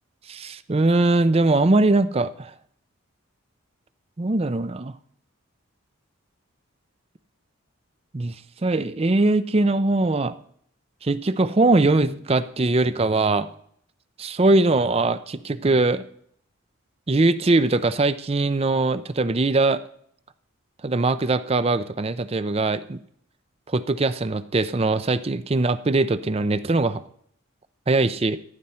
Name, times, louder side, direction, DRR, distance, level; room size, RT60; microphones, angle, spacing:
voice 1, 0.3-2.5 4.2-5.0 8.1-8.3 8.6-10.4 11.0-13.5 14.2-16.0 17.1-19.8 20.8-23.0 23.7-27.0 27.9-28.4, right 2 dB, 30° right, 13 dB, 0.5 m, -21 dB
15.0 x 11.0 x 4.3 m, 0.66 s
head